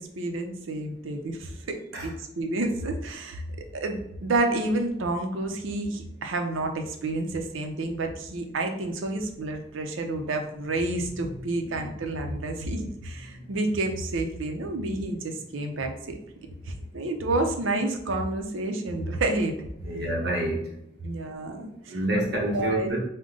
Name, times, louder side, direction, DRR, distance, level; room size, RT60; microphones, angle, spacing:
voice 1, 0.0-1.8 2.0-3.4 3.7-16.2 16.7-19.5 21.0-21.9 22.5-22.9, right 2 dB, 85° right, 4 dB, 0.6 m, -29 dB
voice 2, 19.8-20.6 21.9-23.0, right 1 dB, 55° right, -2 dB, 1.0 m, -28 dB
5.1 x 2.1 x 3.8 m, 0.78 s
head